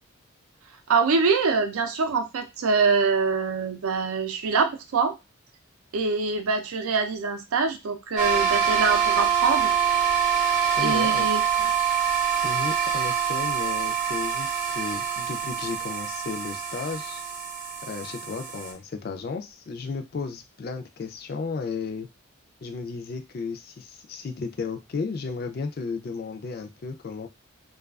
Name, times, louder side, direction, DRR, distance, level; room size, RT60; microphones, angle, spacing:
voice 1, 0.9-5.2 5.9-9.7 10.8-11.7, right 4 dB, 90° right, 7 dB, 0.5 m, -24 dB
sound 1, 8.2-18.7, right 8 dB, 35° right, 0.5 m, -25 dB
voice 2, 10.8-11.3 12.4-17.2 17.9-22.1 22.6-27.3, left 4 dB, 45° left, 6 dB, 0.3 m, -34 dB
2.3 x 2.3 x 2.3 m, 0.24 s
head